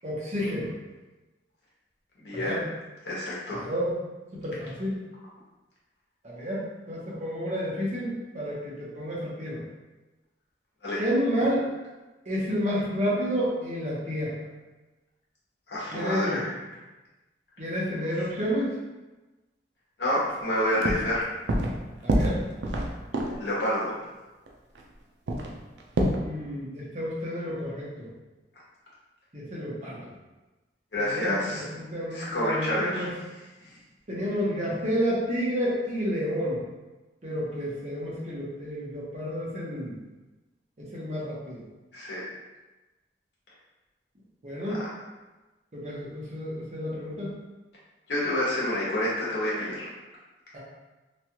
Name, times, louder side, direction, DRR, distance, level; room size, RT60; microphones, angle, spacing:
voice 1, 0.0-0.7 2.3-2.6 3.5-3.9 4.3-4.9 6.2-9.6 11.0-11.7 12.3-14.5 15.9-16.4 17.6-18.8 22.0-22.4 26.2-28.1 29.3-30.1 31.0-33.1 34.1-36.6 37.2-40.0 40.8-41.7 44.4-44.9 45.7-47.3 50.5-50.6, equal, 40° right, -6 dB, 0.8 m, -30 dB
voice 2, 2.2-2.7 3.0-3.6 10.8-11.0 15.7-16.6 20.0-21.2 23.4-24.0 30.9-31.6 32.1-33.1 33.6-33.7 41.9-42.2 48.1-49.8, left 1 dB, 80° left, -7 dB, 1.0 m, -28 dB
sound 1, 20.3-20.4 20.7-21.2 21.5-21.8 22.1-23.5 24.5-24.6 24.7-24.8 25.3-26.2, right 1 dB, 75° right, 0.4 m, -26 dB
3.0 x 2.3 x 2.9 m, 1.1 s
head